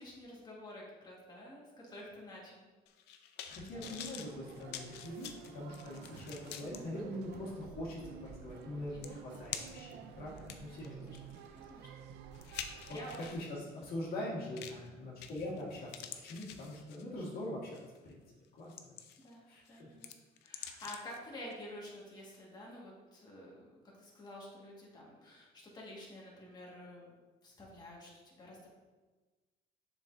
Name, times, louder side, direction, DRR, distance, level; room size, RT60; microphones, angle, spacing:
voice 1, 0.0-2.7 6.0-6.4 8.9-9.5 10.3-10.5 11.0-11.2 11.6-11.9 12.4-13.3 14.7-14.9 19.2-20.1 20.4-23.7 24.0-27.1 27.4-28.7, left 1 dB, 25° left, -4 dB, 1.8 m, -50 dB
sound 1, 2.9-6.8 7.3-7.4 8.6-8.7 9.0-9.9 10.4-13.5 14.6-14.9 15.2-15.6 15.9-17.2 17.7-18.0 18.4-19.3 19.7-21.2 21.5-21.6, left 9 dB, 85° left, 0.5 m, -47 dB
voice 2, 3.5-11.1 12.9-18.2 18.6-18.7 19.5-19.9, left 1 dB, 65° left, -5 dB, 2.0 m, -43 dB
sound 2, 3.7-13.4, right 8 dB, 80° right, 0.5 m, -51 dB
7.3 x 5.8 x 2.7 m, 1.3 s
cardioid pair, 110°, 17 cm